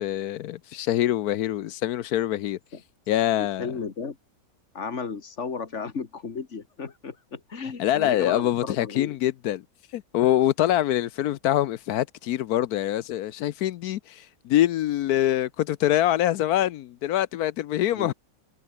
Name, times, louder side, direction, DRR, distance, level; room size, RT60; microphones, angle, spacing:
voice 1, 0.0-2.6 3.1-3.8 7.8-9.6 9.9-18.1, left 13 dB, 70° left, 1.0 m, -24 dB
voice 2, 3.4-4.2 4.7-9.2 17.9-18.1, left 5 dB, 45° left, 2.2 m, -34 dB
omnidirectional pair, 1.9 m